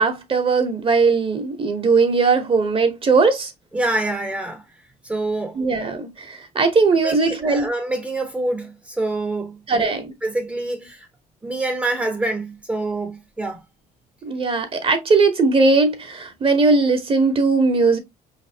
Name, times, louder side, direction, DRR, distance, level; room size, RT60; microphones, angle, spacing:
voice 1, 0.0-3.5 5.5-7.7 9.7-10.1 14.2-18.0, right 4 dB, 35° right, 1.0 m, -19 dB
voice 2, 3.7-4.6 5.0-5.6 7.0-9.9 10.2-11.1 11.4-13.6, right 2 dB, 5° right, 0.8 m, -26 dB
4.9 x 3.3 x 2.7 m
cardioid pair, 110°, 17 cm